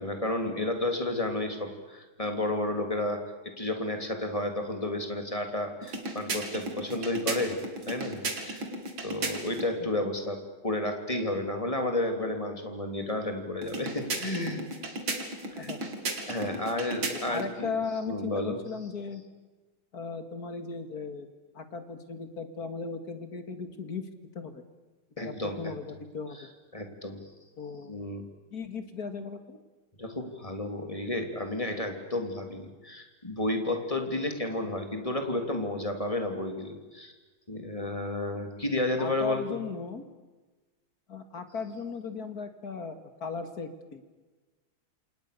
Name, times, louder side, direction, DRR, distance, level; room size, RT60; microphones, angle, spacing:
voice 1, 0.0-7.6 7.9-8.7 9.0-10.4 10.6-14.6 15.6-15.7 16.3-17.7 18.1-18.6 25.2-25.7 26.7-27.3 27.9-28.3 30.0-37.1 37.5-39.6, left 1 dB, 15° left, 5 dB, 3.4 m, -32 dB
sound 1, 5.8-9.7 13.6-17.5, right 2 dB, 70° right, 3.8 m, -35 dB
voice 2, 15.5-15.9 17.1-19.2 19.9-21.3 21.5-24.1 24.3-24.6 25.2-26.5 27.6-27.9 28.5-29.6 39.0-40.0 41.1-44.0, left 4 dB, 45° left, 9 dB, 2.6 m, -37 dB
28.0 x 27.5 x 6.9 m, 1.3 s
omnidirectional pair, 2.3 m